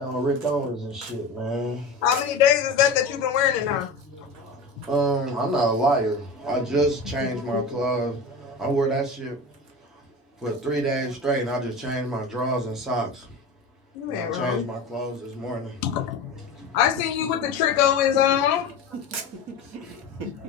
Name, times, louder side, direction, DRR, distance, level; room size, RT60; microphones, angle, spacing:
voice 1, 0.0-1.8 4.9-6.2 6.4-8.1 8.6-9.3 10.4-13.1 14.1-15.7, right 2 dB, ahead, 0.5 m, -26 dB
voice 2, 2.0-3.9 4.8-4.9 7.5-7.8 13.9-14.7 15.8-16.3 16.7-18.7, left 10 dB, 70° left, 0.6 m, -22 dB
voice 3, 4.3-4.9 17.2-17.5 18.3-18.4 19.1-20.3, right 4 dB, 45° right, 0.9 m, -38 dB
2.5 x 2.4 x 3.0 m
cardioid pair, 175°, 37 cm